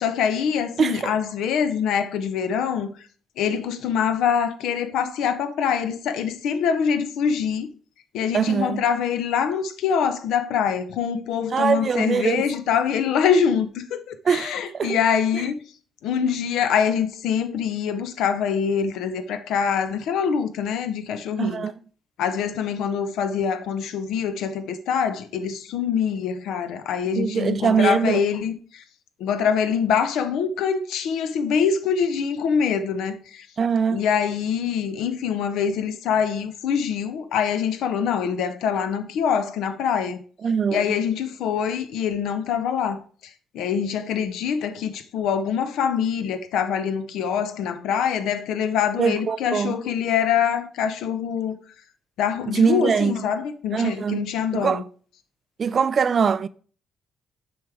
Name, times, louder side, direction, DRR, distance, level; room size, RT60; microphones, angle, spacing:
voice 1, 0.0-2.9 3.4-7.7 8.1-15.6 16.0-21.6 22.2-28.8 29.2-33.5 33.9-40.2 40.7-43.0 43.5-51.6 52.2-54.8, left 7 dB, 85° left, 0.6 m, -24 dB
voice 2, 0.8-1.1 8.3-8.8 11.5-12.4 14.3-14.5 14.7-15.0 21.4-21.7 27.2-28.2 33.6-34.0 40.4-41.0 49.0-49.8 52.5-53.1 53.7-54.2 54.5-54.8 55.6-56.5, right 6 dB, 45° right, 0.3 m, -22 dB
7.0 x 4.8 x 3.3 m
cardioid pair, 90°, 0 cm